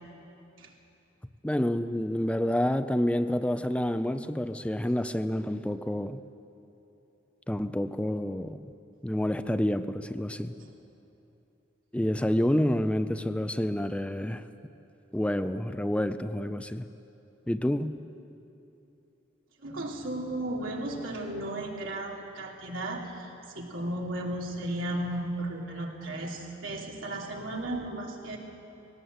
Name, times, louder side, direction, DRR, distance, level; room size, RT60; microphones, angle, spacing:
voice 1, 1.4-6.2 7.5-8.6 9.0-10.5 11.9-14.5 15.1-16.9 17.5-18.0, left 1 dB, 5° left, 10 dB, 0.4 m, -28 dB
voice 2, 19.6-23.2 23.5-28.4, right 1 dB, 90° right, -1 dB, 2.9 m, -34 dB
19.5 x 17.5 x 8.0 m, 2.8 s
head